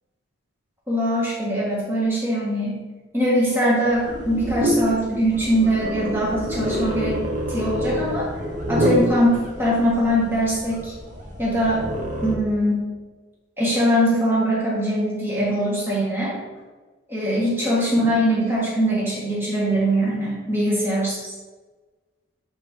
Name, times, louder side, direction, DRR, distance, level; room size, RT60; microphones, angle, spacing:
voice 1, 0.9-2.8 3.1-7.2 7.5-8.3 8.7-10.9 11.4-11.8 12.2-12.8 13.6-16.4 17.1-21.3, equal, 10° right, -6 dB, 1.7 m, -22 dB
sound 1, 3.8-12.4, equal, 40° right, 1.0 m, -27 dB
8.5 x 4.2 x 3.7 m, 1.3 s
head